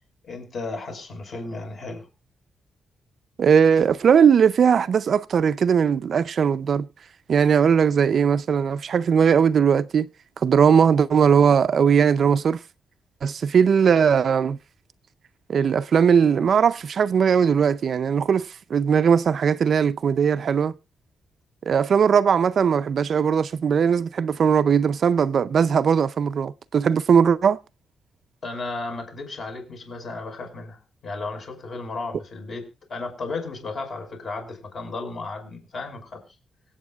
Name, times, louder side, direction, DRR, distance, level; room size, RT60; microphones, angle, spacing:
voice 1, 0.2-2.1 28.4-32.6 32.9-36.2, left 3 dB, 45° left, 5.7 m, -34 dB
voice 2, 3.4-6.9 7.3-10.1 10.4-12.6 13.2-14.6 15.5-20.7 21.7-27.6, right 7 dB, 50° right, 0.5 m, -19 dB
25.0 x 8.6 x 2.4 m
cardioid pair, 145°, 0 cm